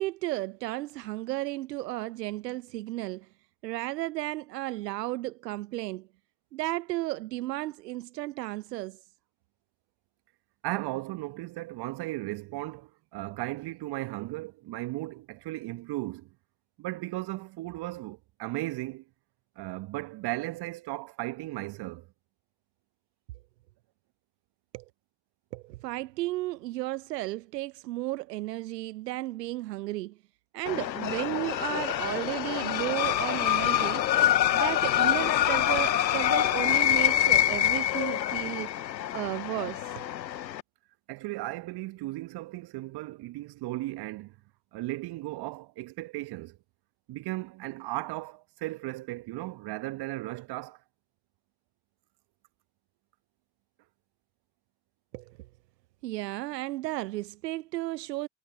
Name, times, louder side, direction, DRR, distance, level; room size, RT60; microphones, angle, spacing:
voice 1, 0.0-3.3 3.6-6.1 6.5-9.0 24.7-24.8 25.5-30.2 30.5-34.2 34.5-40.1 55.1-55.4 56.0-58.3, right 18 dB, 75° right, 0.7 m, -34 dB
voice 2, 10.6-16.3 16.8-19.0 19.6-22.1 41.1-44.4 44.7-46.6 47.1-50.8, right 19 dB, 50° right, 1.4 m, -36 dB
sound 1, 30.7-40.6, left 11 dB, 90° left, 0.6 m, -26 dB
figure-of-eight pair, 60°, 50 cm